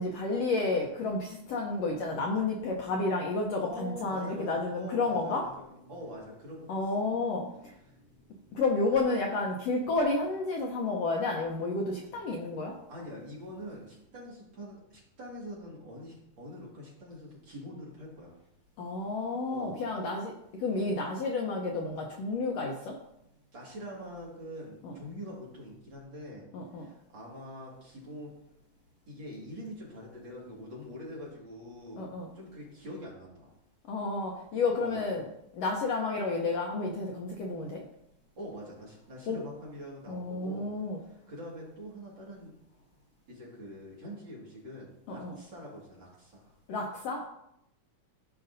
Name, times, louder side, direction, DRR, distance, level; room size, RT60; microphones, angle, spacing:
voice 1, 0.0-5.4 6.7-7.7 8.5-12.7 18.8-20.3 20.6-23.0 24.8-24.9 26.5-26.9 32.0-32.3 33.9-35.2 35.5-37.8 39.3-39.4 40.1-41.0 45.1-45.4 46.7-47.3, left 3 dB, 70° left, 0 dB, 1.6 m, -31 dB
voice 2, 3.6-6.8 12.9-18.4 19.5-19.8 23.5-26.5 26.7-28.3 29.1-33.5 34.8-35.1 38.4-40.7 41.0-42.5 43.3-46.5, equal, 40° right, -4 dB, 2.5 m, -44 dB
13.5 x 5.2 x 2.6 m, 0.80 s
omnidirectional pair, 3.5 m